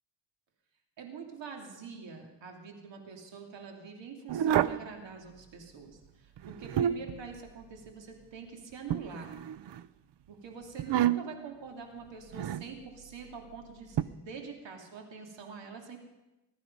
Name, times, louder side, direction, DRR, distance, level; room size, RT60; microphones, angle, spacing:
voice 1, 1.0-9.3 10.3-16.0, right 5 dB, 90° right, 2 dB, 2.7 m, -45 dB
sound 1, 4.3-4.9 6.4-7.2 8.9-9.8 10.8-11.5 12.3-12.7 14.0-14.1, right 10 dB, 70° right, 0.7 m, -29 dB
21.0 x 13.0 x 5.3 m, 1.0 s
wide cardioid pair, 125°, 43 cm